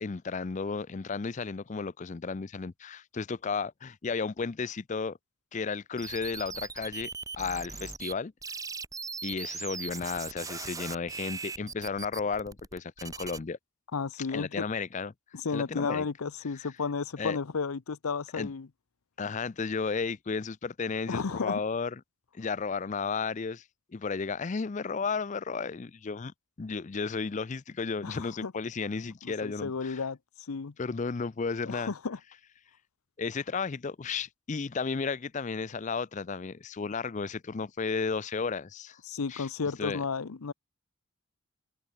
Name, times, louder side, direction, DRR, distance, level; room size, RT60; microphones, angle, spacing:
voice 1, 0.0-5.2 5.5-7.1 7.4-8.3 9.2-13.6 14.3-15.1 15.5-16.1 16.6-16.7 17.2-17.4 18.3-18.5 19.2-22.0 22.3-23.6 23.9-30.0 30.8-31.9 33.2-39.0 39.3-39.5 39.8-40.0, left 5 dB, 35° left, 0.4 m, -33 dB
sound 1, 6.0-8.1 8.4-13.4, right 5 dB, 15° right, 1.0 m, -39 dB
voice 2, 13.9-14.6 15.3-18.7 21.1-21.6 28.0-28.5 29.2-30.2 30.5-30.7 31.6-32.2 39.1-40.5, left 5 dB, 80° left, 0.7 m, -33 dB
open air
head